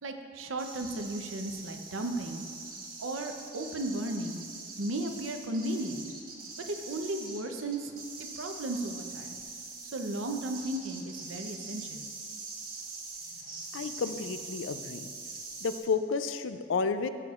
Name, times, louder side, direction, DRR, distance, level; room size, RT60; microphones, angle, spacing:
voice 1, 0.0-2.4 3.0-4.4 4.8-6.1 6.7-7.9 8.2-9.3 9.8-12.1, right 1 dB, 75° right, 5 dB, 0.7 m, -35 dB
sound 1, 0.6-15.8, right 3 dB, 45° right, 1.3 m, -43 dB
voice 2, 13.7-15.1 15.6-17.1, left 5 dB, 70° left, 10 dB, 0.4 m, -31 dB
13.5 x 7.8 x 2.4 m, 2.1 s
head